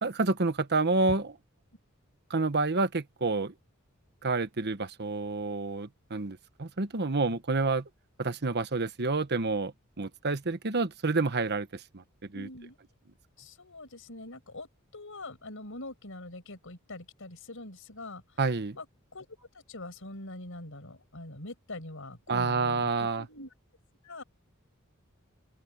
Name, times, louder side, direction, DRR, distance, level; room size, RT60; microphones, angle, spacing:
voice 1, 0.0-1.4 2.3-3.5 4.2-7.9 8.2-9.7 10.0-12.0 12.3-12.5 18.4-18.8 22.3-23.2, right 3 dB, 50° right, 1.2 m, -29 dB
voice 2, 12.3-12.8 13.4-18.4 18.7-18.9 19.1-23.5 24.0-24.2, left 2 dB, 65° left, 6.3 m, -44 dB
open air
head